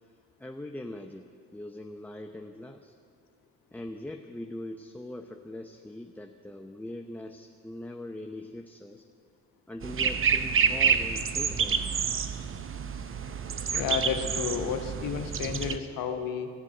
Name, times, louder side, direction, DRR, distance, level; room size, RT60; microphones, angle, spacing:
voice 1, 0.4-1.3 1.5-2.9 3.7-9.0 9.7-11.9, left 1 dB, 5° left, 4 dB, 0.7 m, -41 dB
sound 1, 9.8-15.8, right 6 dB, 35° right, 0.8 m, -28 dB
voice 2, 13.7-16.5, left 7 dB, 65° left, 7 dB, 1.2 m, -31 dB
14.5 x 7.4 x 8.2 m, 2.2 s
hypercardioid pair, 50°, 36 cm